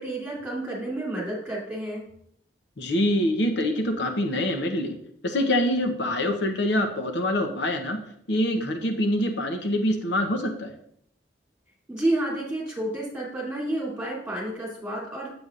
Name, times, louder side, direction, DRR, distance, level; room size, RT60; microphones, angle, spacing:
voice 1, 0.0-2.0 11.9-15.3, right 1 dB, 5° right, -5 dB, 2.7 m, -30 dB
voice 2, 2.8-5.0 5.2-8.0 8.3-10.7, left 1 dB, 75° left, 5 dB, 0.8 m, -25 dB
7.9 x 7.9 x 2.5 m, 0.70 s
head